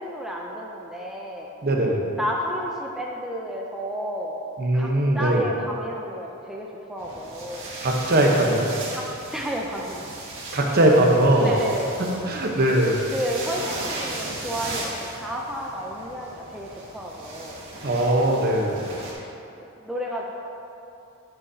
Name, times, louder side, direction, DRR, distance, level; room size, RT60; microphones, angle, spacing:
voice 1, 0.0-1.5 2.2-4.4 4.7-7.7 8.9-10.1 11.4-12.0 13.1-17.6 19.6-20.3, equal, ahead, -3 dB, 0.5 m, -32 dB
voice 2, 1.6-2.0 4.6-5.4 7.8-8.7 10.5-11.6 12.2-13.0 17.8-18.8, right 1 dB, 45° right, 0 dB, 0.9 m, -20 dB
sound 1, 7.0-19.1, right 2 dB, 60° right, 1.8 m, -37 dB
9.0 x 8.4 x 2.8 m, 2.8 s
head